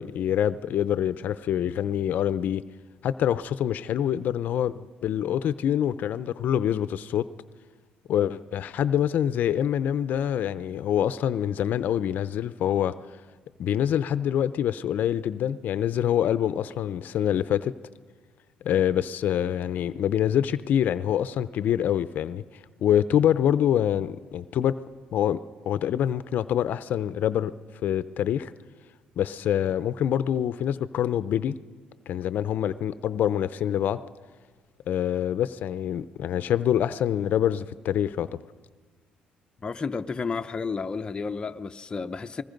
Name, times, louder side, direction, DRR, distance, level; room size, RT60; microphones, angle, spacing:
voice 1, 0.0-2.6 3.0-7.3 8.1-12.9 13.6-17.7 18.6-22.4 22.8-24.8 25.1-25.4 25.7-27.5 27.8-28.5 29.2-31.5 32.1-34.0 34.9-38.3, left 10 dB, 65° left, 0.6 m, -25 dB
voice 2, 39.6-42.4, left 5 dB, 30° left, 0.7 m, -31 dB
28.5 x 20.5 x 5.3 m
cardioid pair, 100°, 3 cm